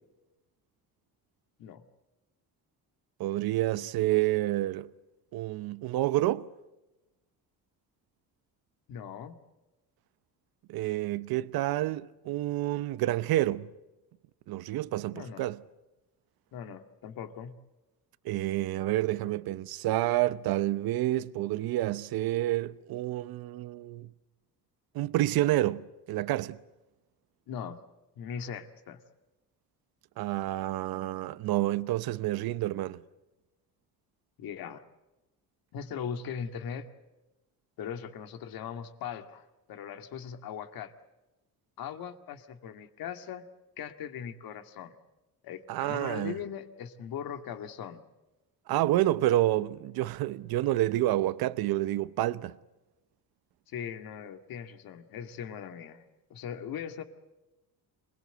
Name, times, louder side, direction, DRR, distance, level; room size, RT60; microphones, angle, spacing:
voice 1, 3.2-4.9 5.3-6.5 10.7-13.7 14.5-15.6 18.2-24.1 24.9-26.6 30.2-33.0 45.7-46.3 48.7-52.6, right 15 dB, 80° right, 0.9 m, -29 dB
voice 2, 8.9-9.4 15.1-15.4 16.5-17.6 27.5-27.8 28.2-29.0 34.4-34.8 35.7-36.9 37.8-40.9 41.8-43.5 43.8-45.0 45.4-48.0 53.7-56.1 56.3-57.0, left 8 dB, 75° left, 2.2 m, -39 dB
27.0 x 21.0 x 8.0 m
cardioid pair, 140°, 36 cm